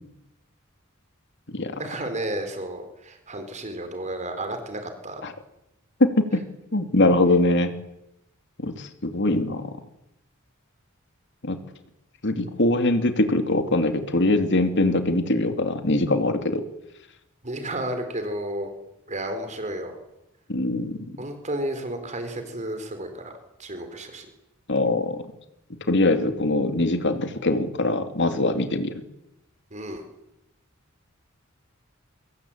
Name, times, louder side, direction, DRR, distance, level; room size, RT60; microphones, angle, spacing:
voice 1, 1.8-5.2 17.4-18.7 19.1-20.0 21.2-23.3 23.6-24.3 29.7-30.0, right 1 dB, 35° right, 7 dB, 4.1 m, -32 dB
voice 2, 6.0-6.4 6.7-7.7 8.6-9.7 11.4-11.6 12.2-16.6 20.5-21.2 24.7-25.2 25.9-29.0, left 2 dB, 60° left, 7 dB, 2.7 m, -22 dB
25.0 x 22.0 x 8.7 m, 0.87 s
head